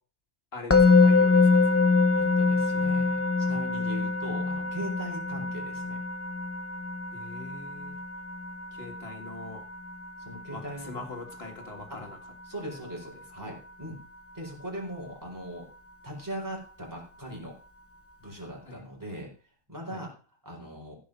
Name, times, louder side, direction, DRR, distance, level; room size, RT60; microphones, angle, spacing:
voice 1, 0.5-1.9 2.7-2.9 3.4-3.6 7.1-8.0 8.7-9.6 10.5-12.2 13.1-13.5 18.7-18.8 19.9-20.0, left 3 dB, 60° left, 4 dB, 2.3 m, -43 dB
Musical instrument, 0.7-11.8, left 4 dB, 15° left, 0.5 m, -25 dB
voice 2, 2.1-6.0 10.2-11.0 11.9-12.1 12.4-14.0 14.3-15.7 16.0-17.5 18.2-19.3 19.7-20.1 20.4-21.0, equal, 15° right, -1 dB, 4.2 m, -40 dB
15.5 x 5.5 x 6.1 m, 0.39 s
omnidirectional pair, 1.2 m